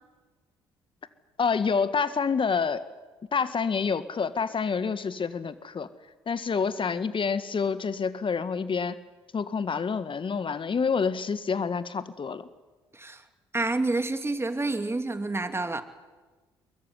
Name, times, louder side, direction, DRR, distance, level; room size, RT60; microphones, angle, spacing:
voice 1, 1.4-2.8 3.3-5.9 6.3-9.0 9.3-12.5, left 5 dB, 40° left, 13 dB, 1.9 m, -27 dB
voice 2, 13.5-15.8, right 2 dB, 20° right, 9 dB, 2.7 m, -28 dB
23.0 x 22.0 x 9.8 m, 1.3 s
hypercardioid pair, 45°, 13 cm